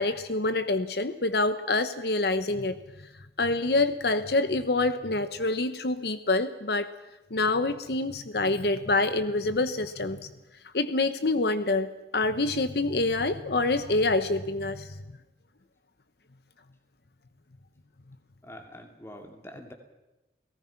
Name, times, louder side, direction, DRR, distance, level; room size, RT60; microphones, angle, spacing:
voice 1, 0.0-3.1 3.4-6.9 7.3-10.3 10.7-15.0, left 2 dB, 65° left, 11 dB, 1.0 m, -26 dB
voice 2, 18.4-19.7, left 1 dB, 15° left, 4 dB, 2.6 m, -45 dB
29.5 x 18.0 x 5.9 m, 1.0 s
head